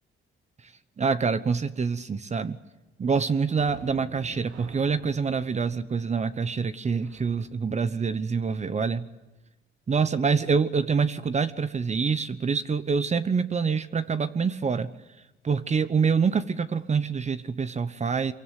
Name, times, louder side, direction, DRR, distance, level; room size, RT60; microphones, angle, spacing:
voice 1, 1.0-2.6 3.0-9.1 9.9-14.9 15.4-18.3, right 5 dB, 35° right, 13 dB, 1.1 m, -26 dB
sound 1, 3.5-8.9 16.2-16.4 16.8-16.9, right 7 dB, 85° right, 3.0 m, -49 dB
24.5 x 23.5 x 9.2 m, 1.0 s
cardioid pair, 90°, 20 cm